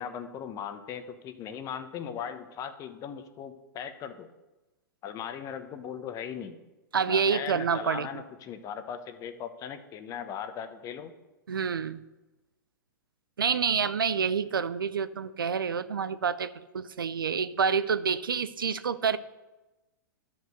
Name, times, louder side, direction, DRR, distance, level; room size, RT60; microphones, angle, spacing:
voice 1, 0.0-4.3 5.0-6.6 7.0-11.1, left 8 dB, 30° left, 9 dB, 1.0 m, -38 dB
voice 2, 6.9-8.1 11.5-12.0 13.4-19.2, right 6 dB, 85° right, 14 dB, 0.5 m, -28 dB
12.0 x 5.5 x 6.5 m, 1.1 s
hypercardioid pair, 115°, 11 cm